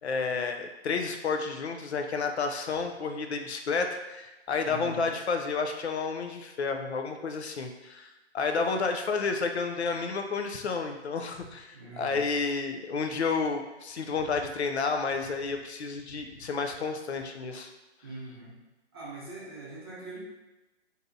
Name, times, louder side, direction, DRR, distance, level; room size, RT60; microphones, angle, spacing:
voice 1, 0.0-17.7, left 4 dB, 65° left, 5 dB, 0.5 m, -31 dB
voice 2, 4.7-5.0 11.7-12.2 18.0-18.5 18.9-20.2, right 3 dB, 20° right, -6 dB, 0.6 m, -42 dB
2.8 x 2.7 x 3.6 m, 1.0 s
hypercardioid pair, 155°, 35 cm